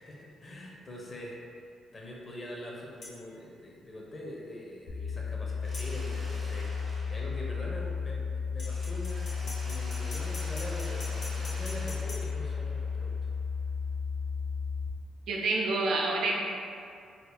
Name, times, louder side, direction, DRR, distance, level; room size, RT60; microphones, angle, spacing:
voice 1, 0.0-1.4 1.9-6.7 7.1-13.1, left 1 dB, 30° left, -3 dB, 0.7 m, -43 dB
sound 1, 3.0-3.2 5.7-5.9 8.6-12.2, left 2 dB, 65° left, 0.9 m, -44 dB
sound 2, 4.9-14.9, left 5 dB, 90° left, 0.6 m, -34 dB
Mechanisms, 5.6-8.2 8.6-13.4, equal, 35° right, 1.1 m, -48 dB
voice 2, 15.3-16.3, right 3 dB, 70° right, -1 dB, 0.5 m, -28 dB
3.9 x 2.7 x 2.3 m, 2.3 s
cardioid pair, 90°, 0 cm